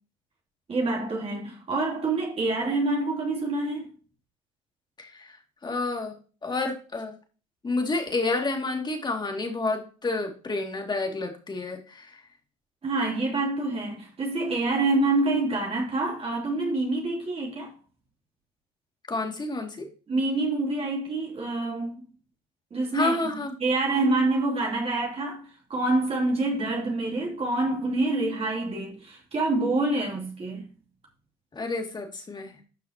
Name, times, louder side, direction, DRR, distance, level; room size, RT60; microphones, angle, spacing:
voice 1, 0.7-3.9 12.8-17.7 20.1-22.0 22.7-23.2 23.6-30.7, right 2 dB, 40° right, 3.2 m, -26 dB
voice 2, 5.0-6.2 6.4-7.1 7.6-12.2 19.1-19.9 22.9-23.5 31.5-32.5, left 3 dB, 30° left, 2.5 m, -29 dB
12.0 x 5.6 x 2.9 m
supercardioid pair, 75°, 15 cm